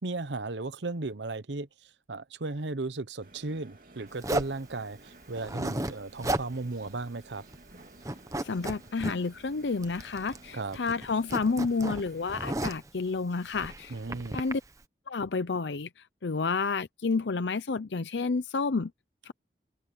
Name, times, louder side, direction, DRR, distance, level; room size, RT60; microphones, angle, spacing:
voice 1, 0.0-7.4 10.5-10.8 13.9-14.4, right 3 dB, 90° right, 1.0 m, -35 dB
sound 1, 3.2-12.7, right 2 dB, 50° right, 2.8 m, -55 dB
Zipper (clothing), 4.2-4.6 5.4-5.9 6.2-6.5 6.9-7.0 7.3-7.7 8.0-9.1 9.8-10.5 10.7-12.9 13.5-14.5, right 1 dB, 20° right, 1.1 m, -34 dB
voice 2, 8.4-13.9 14.3-14.6 15.1-18.9 19.2-19.3, left 4 dB, 85° left, 0.6 m, -30 dB
open air
head